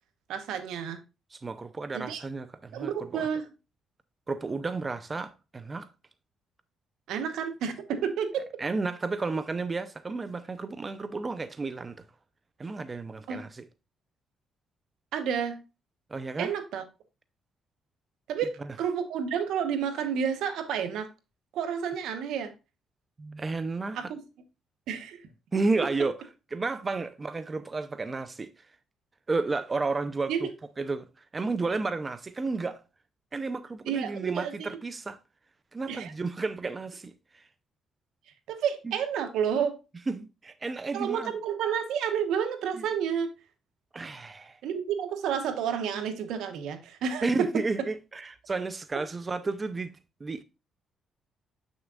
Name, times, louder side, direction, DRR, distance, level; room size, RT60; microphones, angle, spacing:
voice 1, 0.3-1.0 1.9-2.2 2.7-3.5 7.1-8.5 13.3-13.4 15.1-15.6 16.4-16.8 18.3-21.1 21.5-22.5 23.9-24.2 24.9-25.2 30.3-30.5 33.9-34.7 35.9-36.1 38.5-39.8 40.9-43.3 44.6-47.5, right 7 dB, 85° right, 1.0 m, -30 dB
voice 2, 1.3-3.3 4.3-5.9 8.6-12.0 12.6-13.6 16.1-16.5 23.2-24.1 25.5-26.2 26.5-28.7 29.3-30.5 30.8-32.8 33.3-35.2 35.7-37.5 40.1-41.3 43.9-44.6 47.2-49.9 50.2-50.4, right 3 dB, 30° right, 0.5 m, -32 dB
7.0 x 6.3 x 2.4 m
cardioid pair, 90°, 0 cm